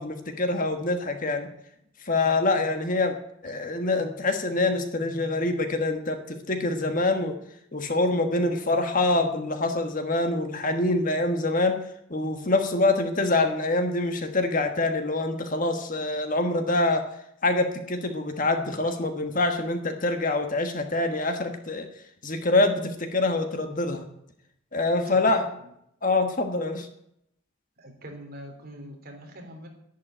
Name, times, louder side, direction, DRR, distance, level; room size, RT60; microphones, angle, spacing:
voice 1, 0.0-1.5 2.0-3.1 3.4-7.3 7.7-11.8 12.1-17.0 17.4-21.9 22.2-24.1 24.7-25.4 26.0-26.9, left 2 dB, 40° left, 6 dB, 1.4 m, -25 dB
voice 2, 25.0-25.5 27.8-29.7, equal, 45° right, 2 dB, 3.3 m, -42 dB
11.0 x 11.0 x 9.0 m, 0.75 s
head